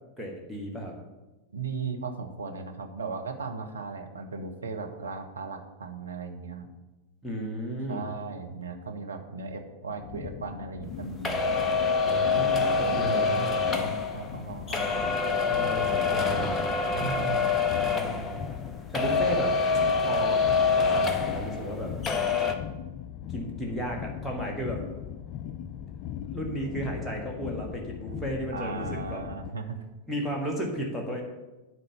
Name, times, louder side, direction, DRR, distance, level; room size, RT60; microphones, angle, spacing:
voice 1, 0.2-0.9 7.2-8.0 12.0-13.5 15.5-16.8 17.9-18.4 18.9-19.6 20.0-20.4 20.9-21.9 23.3-24.8 26.2-29.2 30.1-31.2, equal, 5° left, -2 dB, 1.6 m, -34 dB
voice 2, 1.5-6.7 7.9-11.4 12.8-15.1 16.9-17.6 28.5-29.8, right 4 dB, 75° right, 4 dB, 1.1 m, -37 dB
sound 1, 10.0-29.5, left 9 dB, 40° left, 0.4 m, -39 dB
sound 2, 11.2-18.7 18.9-21.8 22.0-22.5, left 4 dB, 20° left, 0.9 m, -26 dB
11.0 x 4.2 x 6.9 m, 1.1 s
figure-of-eight pair, 90°, 0 cm